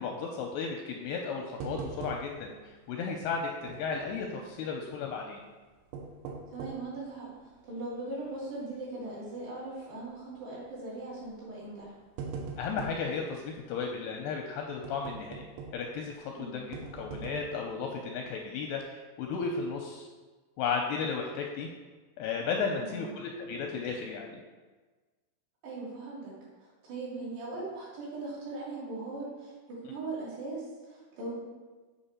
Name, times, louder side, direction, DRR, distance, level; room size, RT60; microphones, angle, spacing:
voice 1, 0.0-5.4 12.6-15.5 15.7-20.1 20.6-21.7 22.2-24.4, left 5 dB, 85° left, 2 dB, 2.4 m, -34 dB
sound 1, 1.6-2.6 2.9-3.0 3.7-4.3 5.7-6.9 7.5-7.6 8.2-8.5 8.8-8.9 10.0-10.3 11.2-11.4 11.8-13.1 14.8-16.0 16.7-17.7 18.2-18.4 18.7-18.8, right 4 dB, 85° right, 3.3 m, -41 dB
voice 2, 6.5-12.0 16.3-16.6 22.8-23.1 25.6-26.3 26.6-31.4, right 2 dB, 65° right, -8 dB, 4.9 m, -39 dB
9.0 x 5.3 x 4.3 m, 1.3 s
omnidirectional pair, 5.2 m